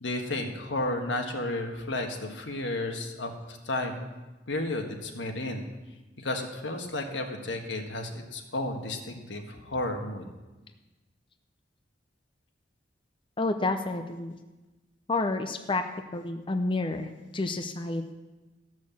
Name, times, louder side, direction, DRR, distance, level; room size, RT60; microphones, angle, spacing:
voice 1, 0.0-4.1 4.5-5.6 6.2-10.2, left 2 dB, 85° left, 4 dB, 1.5 m, -32 dB
voice 2, 13.4-14.3 15.1-15.8 16.1-18.1, left 2 dB, 30° left, 7 dB, 0.6 m, -29 dB
14.0 x 6.3 x 7.2 m, 1.1 s
head